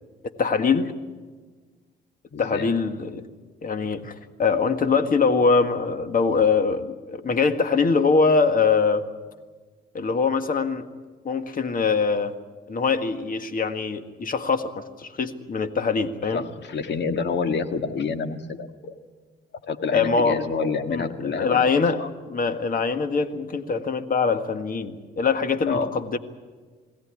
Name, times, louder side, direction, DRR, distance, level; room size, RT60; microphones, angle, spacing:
voice 1, 0.2-0.9 2.4-3.3 3.6-4.1 4.4-9.0 9.9-10.8 11.2-12.3 12.7-16.4 19.9-20.4 20.9-22.0 22.3-26.2, left 5 dB, 45° left, 9 dB, 1.7 m, -23 dB
voice 2, 2.3-2.7 16.3-19.0 19.6-22.1 25.7-25.9, left 5 dB, 60° left, 8 dB, 1.8 m, -28 dB
21.5 x 16.5 x 9.8 m, 1.4 s
cardioid pair, 90°, 20 cm